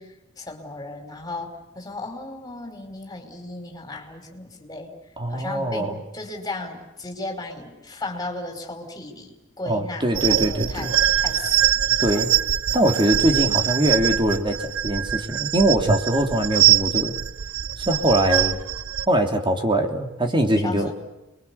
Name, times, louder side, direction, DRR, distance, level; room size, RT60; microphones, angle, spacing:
voice 1, 0.0-4.9 5.3-12.4 20.6-20.9, left 2 dB, 20° left, 3 dB, 5.2 m, -36 dB
voice 2, 5.2-6.0 9.7-10.9 12.0-12.3 12.7-17.1 17.9-18.6 19.1-20.9, right 1 dB, 25° right, 4 dB, 3.1 m, -22 dB
sound 1, 10.1-19.1, right 12 dB, 65° right, 0.8 m, -23 dB
29.5 x 23.0 x 7.1 m, 0.97 s
head